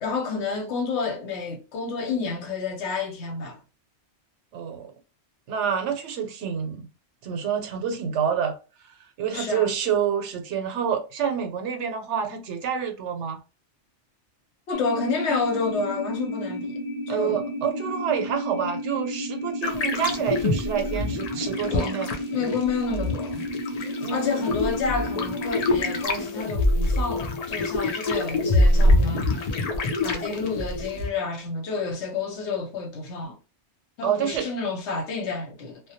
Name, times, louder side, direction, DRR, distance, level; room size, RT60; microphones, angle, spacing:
voice 1, 0.0-3.6 9.3-9.7 14.7-16.8 17.1-17.4 21.7-22.0 22.3-23.3 24.1-29.3 30.0-33.4 34.0-35.8, left 4 dB, 75° left, 1.0 m, -29 dB
voice 2, 4.5-4.9 5.5-6.8 7.2-8.6 8.8-13.4 17.1-22.1 24.0-24.4 34.0-34.5, right 8 dB, 90° right, 0.9 m, -28 dB
sound 1, 14.7-26.1, equal, 30° left, 0.8 m, -32 dB
sound 2, 19.6-31.1, left 2 dB, 60° left, 0.4 m, -25 dB
2.1 x 2.1 x 2.7 m
omnidirectional pair, 1.2 m